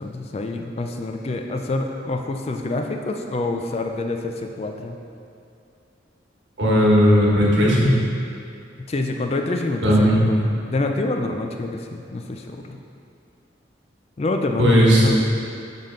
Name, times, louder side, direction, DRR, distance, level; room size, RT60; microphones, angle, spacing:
voice 1, 0.0-5.0 8.9-12.8 14.2-15.2, left 2 dB, 35° left, 4 dB, 0.3 m, -27 dB
voice 2, 6.6-7.9 9.8-10.2 14.6-15.2, equal, 70° right, -5 dB, 1.3 m, -16 dB
5.7 x 5.3 x 3.8 m, 2.5 s
head